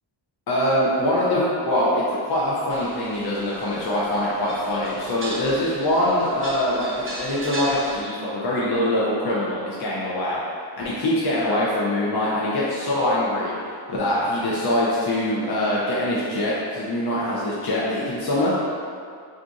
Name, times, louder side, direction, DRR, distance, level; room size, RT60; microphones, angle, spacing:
voice 1, 0.5-10.4 10.8-13.5 13.9-18.5, left 1 dB, 55° left, -7 dB, 0.5 m, -23 dB
sound 1, 2.7-8.0, right 1 dB, 30° right, 0.4 m, -37 dB
2.4 x 2.4 x 3.8 m, 2.2 s
wide cardioid pair, 180°, 47 cm